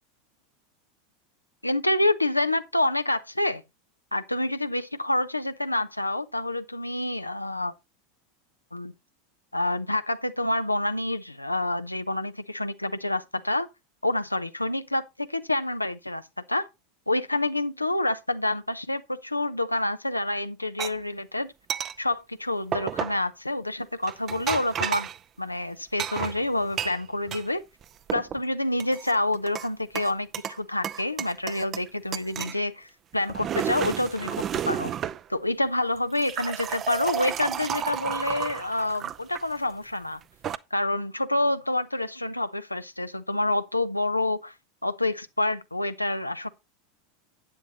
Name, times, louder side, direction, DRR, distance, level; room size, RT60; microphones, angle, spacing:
voice 1, 1.6-3.6 4.1-7.7 8.7-8.9 9.5-13.7 14.0-16.7 17.1-21.5 22.0-25.1 25.4-27.6 28.1-34.9 35.3-40.2 40.7-44.5 44.8-46.5, left 1 dB, 85° left, 0.7 m, -28 dB
sound 1, 20.8-20.9 21.7-21.9 22.7-23.2 24.0-25.2 26.0-27.4 27.8-28.4 28.8-29.7 29.9-30.6 30.8-31.9 32.1-32.6 33.1-35.2 36.0-39.4 40.2-40.6, right 9 dB, 30° right, 0.6 m, -32 dB
11.5 x 9.4 x 2.9 m
figure-of-eight pair, 85°, 0 cm